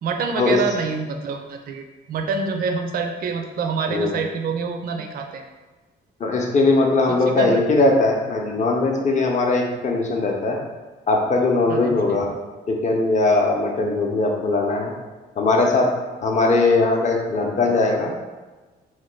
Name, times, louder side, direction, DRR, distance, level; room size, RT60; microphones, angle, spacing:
voice 1, 0.0-5.4 7.1-7.6 11.7-12.2, right 5 dB, 50° right, 5 dB, 0.4 m, -26 dB
voice 2, 6.2-10.6 11.1-12.3 12.7-14.9 15.4-15.9 16.2-18.1, left 3 dB, 40° left, 0 dB, 0.6 m, -20 dB
3.1 x 2.2 x 3.1 m, 1.3 s
cardioid pair, 90°, 20 cm